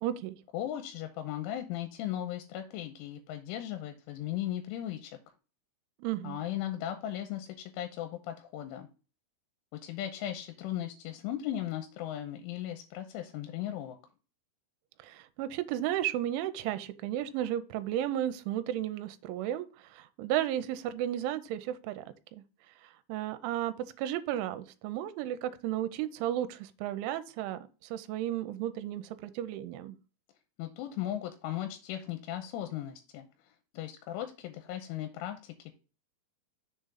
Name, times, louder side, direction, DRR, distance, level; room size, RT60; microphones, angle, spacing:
voice 1, 0.0-0.4 6.0-6.4 15.0-22.0 22.3-22.4 23.1-30.0, right 12 dB, 85° right, 3.1 m, -34 dB
voice 2, 0.5-5.2 6.2-8.9 9.7-14.0 30.6-33.3 33.7-35.7, left 12 dB, 85° left, 3.3 m, -37 dB
6.9 x 3.8 x 5.7 m
omnidirectional pair, 5.6 m